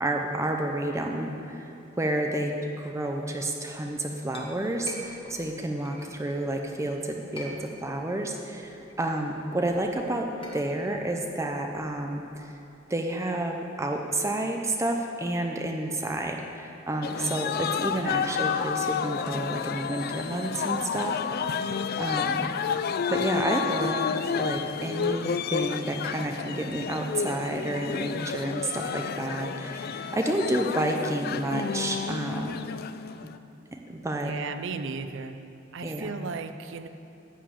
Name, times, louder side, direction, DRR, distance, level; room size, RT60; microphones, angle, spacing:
voice 1, 0.0-10.3 10.5-12.5 12.9-21.6 22.0-22.5 23.1-32.6 33.7-34.3 35.8-36.1, right 1 dB, 15° right, 2 dB, 0.6 m, -30 dB
Chink clink, 4.0-6.7 7.1-8.2 8.5-12.6, left 1 dB, 25° left, 1.3 m, -46 dB
sound 1, 17.0-33.4, left 6 dB, 50° left, 0.3 m, -30 dB
voice 2, 34.2-35.4 35.7-36.9, right 4 dB, 65° right, 9 dB, 0.5 m, -35 dB
11.0 x 5.0 x 8.5 m, 2.8 s
head